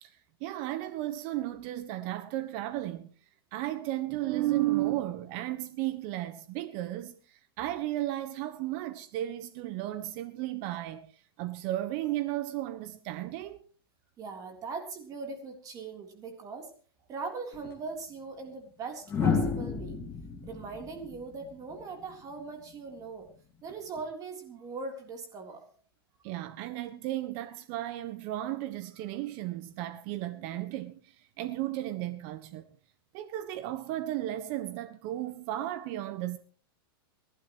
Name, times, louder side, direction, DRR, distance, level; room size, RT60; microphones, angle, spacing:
voice 1, 0.0-3.1 3.5-11.1 11.4-13.7 26.2-32.6 33.1-36.4, right 15 dB, 45° right, 1.3 m, -34 dB
voice 2, 14.2-16.7 17.1-20.0 20.4-23.3 23.6-25.6, right 4 dB, 30° right, 3.6 m, -40 dB
sound 1, 17.5-17.7 19.1-22.1 23.7-24.0, left 5 dB, 20° left, 2.9 m, -31 dB
29.5 x 11.5 x 3.1 m
supercardioid pair, 135°, 13 cm